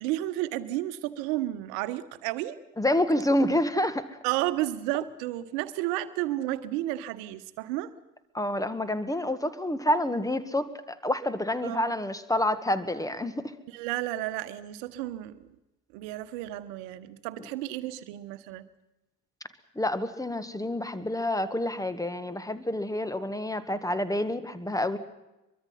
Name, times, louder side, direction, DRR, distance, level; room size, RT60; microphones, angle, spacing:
voice 1, 0.0-2.6 4.2-7.9 11.6-11.9 13.7-15.3 15.9-18.6, right 15 dB, 65° right, 12 dB, 1.3 m, -32 dB
voice 2, 2.8-4.1 8.3-13.4 19.8-25.0, left 1 dB, 5° left, 13 dB, 1.7 m, -28 dB
23.5 x 23.0 x 5.8 m, 0.99 s
figure-of-eight pair, 55°, 50 cm